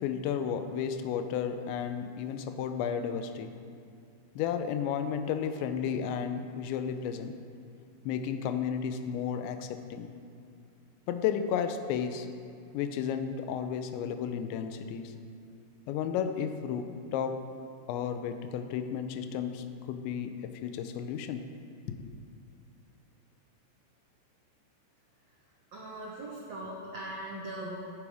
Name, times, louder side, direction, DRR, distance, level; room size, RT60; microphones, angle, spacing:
voice 1, 0.0-3.5 4.4-7.3 8.1-10.1 11.1-12.3 12.7-15.1 15.9-17.4 17.9-21.4 21.9-22.0, left 8 dB, 85° left, 8 dB, 3.0 m, -33 dB
voice 2, 25.7-27.8, right 1 dB, 75° right, -3 dB, 1.5 m, -40 dB
16.0 x 8.5 x 5.0 m, 2.5 s
omnidirectional pair, 5.1 m